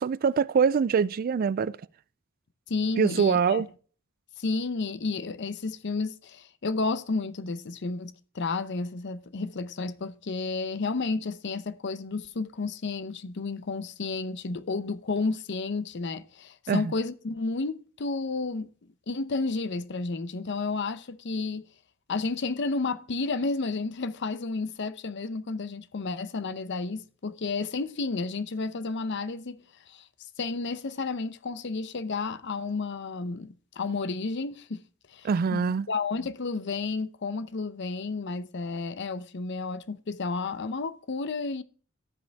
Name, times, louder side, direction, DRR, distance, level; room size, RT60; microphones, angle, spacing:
voice 1, 0.0-1.8 3.0-3.7 16.7-16.9 35.2-35.9, right 6 dB, 45° right, 0.3 m, -24 dB
voice 2, 2.7-3.6 4.4-18.7 19.1-21.7 22.1-30.0 30.4-34.8 35.1-41.6, left 3 dB, 60° left, 0.6 m, -31 dB
14.5 x 5.2 x 3.4 m
head